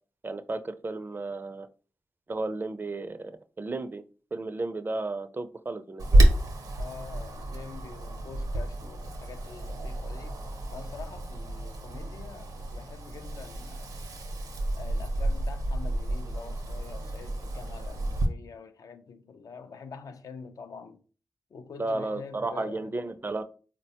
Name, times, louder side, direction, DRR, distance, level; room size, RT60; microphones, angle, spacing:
voice 1, 0.2-1.7 2.3-4.0 4.3-6.3 21.8-23.4, right 2 dB, 35° right, 0.4 m, -33 dB
Wind, 6.0-18.3, right 1 dB, 80° right, 0.6 m, -29 dB
voice 2, 6.7-10.4 10.7-14.0 14.7-21.0 21.5-23.0, left 5 dB, 70° left, 0.4 m, -45 dB
3.9 x 2.1 x 2.8 m
cardioid pair, 50°, 6 cm